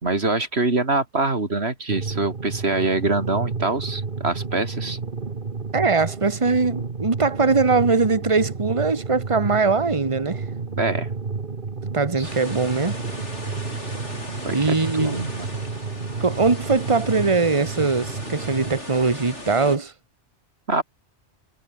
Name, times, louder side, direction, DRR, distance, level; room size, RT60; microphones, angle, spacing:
voice 1, 0.0-5.0 10.7-11.1 12.2-12.3 14.4-15.5 20.7-20.8, right 3 dB, 65° right, 3.5 m, -24 dB
sound 1, 1.9-18.8, right 4 dB, 50° right, 1.7 m, -31 dB
voice 2, 5.7-10.4 11.9-12.9 14.5-15.2 16.2-19.9, right 4 dB, 30° right, 1.6 m, -21 dB
sound 2, 12.2-19.8, left 1 dB, 90° left, 8.5 m, -37 dB
omnidirectional pair, 1.2 m